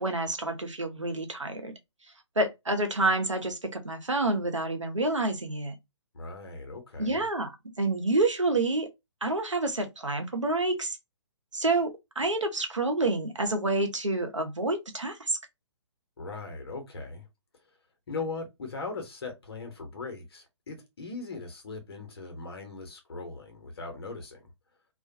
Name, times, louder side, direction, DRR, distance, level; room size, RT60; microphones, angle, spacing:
voice 1, 0.0-1.7 2.4-5.7 7.0-8.9 9.2-11.0 11.5-15.4, right 2 dB, 90° right, 0.7 m, -28 dB
voice 2, 6.1-7.2 16.2-17.3 18.1-24.5, left 3 dB, 55° left, 0.9 m, -39 dB
2.4 x 2.2 x 2.6 m
figure-of-eight pair, 130°, 15 cm